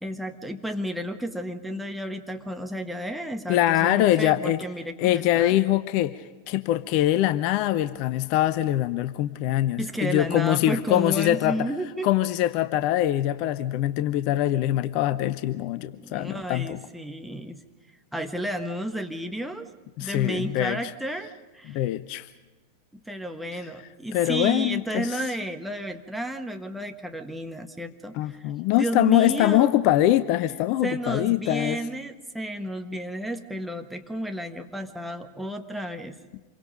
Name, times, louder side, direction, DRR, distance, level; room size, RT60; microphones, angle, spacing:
voice 1, 0.0-5.6 9.8-12.1 16.0-17.6 18.1-19.7 20.0-21.8 23.1-28.4 28.7-29.7 30.8-36.2, equal, ahead, 5 dB, 1.5 m, -32 dB
voice 2, 3.5-4.6 5.0-11.7 12.0-16.8 20.0-20.8 21.7-22.3 24.1-25.2 28.1-31.8, left 14 dB, 45° left, 14 dB, 0.7 m, -23 dB
27.0 x 23.5 x 5.2 m, 1.2 s
figure-of-eight pair, 90°, 0 cm